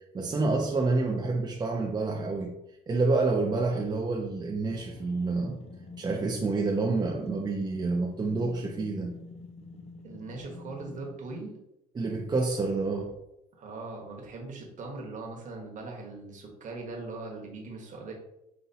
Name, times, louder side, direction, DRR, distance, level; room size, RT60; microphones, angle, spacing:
voice 1, 0.1-2.5 2.9-5.6 6.0-9.1 12.0-13.1, right 3 dB, 25° right, 0 dB, 0.5 m, -28 dB
sound 1, 4.7-11.5, left 4 dB, 35° left, 0.7 m, -47 dB
voice 2, 10.0-11.5 13.6-18.1, right 3 dB, 50° right, 0 dB, 1.3 m, -40 dB
5.5 x 2.8 x 2.7 m, 0.87 s
cardioid pair, 110°, 17 cm